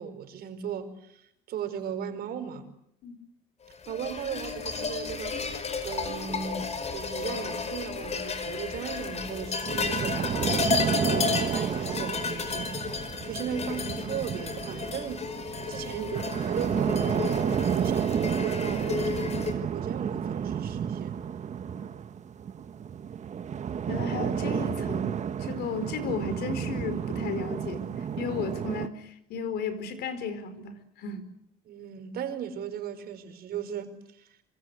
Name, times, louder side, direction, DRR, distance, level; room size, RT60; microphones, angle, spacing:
voice 1, 0.0-2.7 3.9-5.5 5.8-10.4 11.0-12.9 13.2-21.1 31.6-34.3, right 8 dB, 65° right, 4.8 m, -37 dB
sound 1, 3.8-19.5, left 5 dB, 40° left, 4.9 m, -32 dB
sound 2, 9.6-28.9, right 8 dB, 45° right, 1.6 m, -31 dB
voice 2, 23.9-31.3, left 5 dB, 75° left, 4.7 m, -34 dB
26.5 x 26.0 x 8.2 m
cardioid pair, 110°, 17 cm